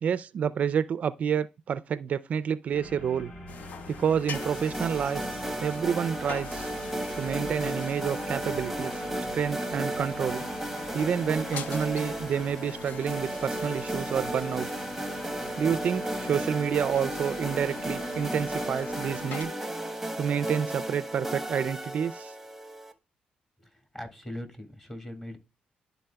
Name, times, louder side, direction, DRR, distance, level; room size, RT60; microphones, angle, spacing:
voice 1, 0.0-3.3 3.9-5.2 5.6-6.7 7.2-9.0 9.3-10.4 10.9-14.8 15.6-19.5 20.2-22.3, right 7 dB, 55° right, 0.3 m, -29 dB
sound 1, 2.7-19.2, left 1 dB, 50° left, 2.8 m, -47 dB
sound 2, 3.5-19.4, left 6 dB, 70° left, 0.6 m, -43 dB
sound 3, 4.3-22.9, right 1 dB, 5° right, 0.9 m, -34 dB
voice 2, 23.6-25.4, left 1 dB, 15° left, 1.8 m, -40 dB
12.0 x 4.0 x 2.2 m
cardioid pair, 90°, 3 cm